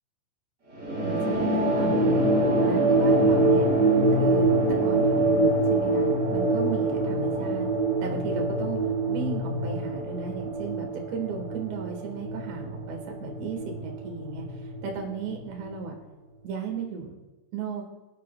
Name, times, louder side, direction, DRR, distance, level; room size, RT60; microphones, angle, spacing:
sound 1, 0.8-15.7, right 2 dB, 45° right, 1.3 m, -25 dB
voice 1, 1.0-2.3 2.6-3.7 4.2-7.7 8.0-8.8 9.1-15.9 16.4-17.2 17.5-17.8, right 6 dB, 70° right, 1 dB, 3.2 m, -35 dB
22.5 x 8.9 x 2.2 m, 1.1 s
omnidirectional pair, 5.6 m